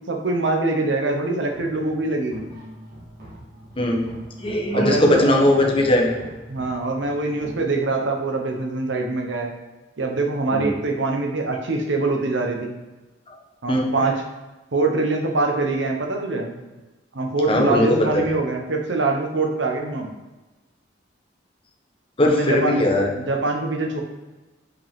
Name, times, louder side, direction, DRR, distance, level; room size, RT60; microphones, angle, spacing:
voice 1, 0.1-2.5 4.7-5.3 6.5-9.5 10.0-12.8 13.6-14.2 14.7-16.6 17.1-20.1 22.2-24.0, right 3 dB, 85° right, 2 dB, 1.0 m, -24 dB
sound 1, 1.5-7.6, equal, 55° right, 1.7 m, -43 dB
voice 2, 3.8-4.1 4.4-6.1 10.5-10.7 13.3-13.4 13.7-14.1 17.5-18.3 22.2-23.1, left 1 dB, 30° left, 0 dB, 1.0 m, -19 dB
5.4 x 5.0 x 3.6 m, 1.1 s
head